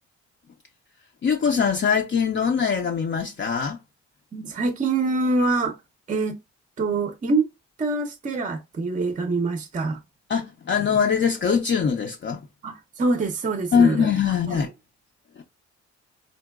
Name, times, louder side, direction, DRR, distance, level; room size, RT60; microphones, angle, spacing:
voice 1, 1.2-3.8 10.3-12.4 13.7-14.7 15.4-15.5, left 6 dB, 40° left, 0.5 m, -22 dB
voice 2, 4.3-5.8 6.1-6.4 6.8-7.5 7.8-10.0 12.6-14.1 14.5-14.6, right 3 dB, 25° right, 0.6 m, -25 dB
3.8 x 2.2 x 2.3 m
cardioid pair, 90°, 30 cm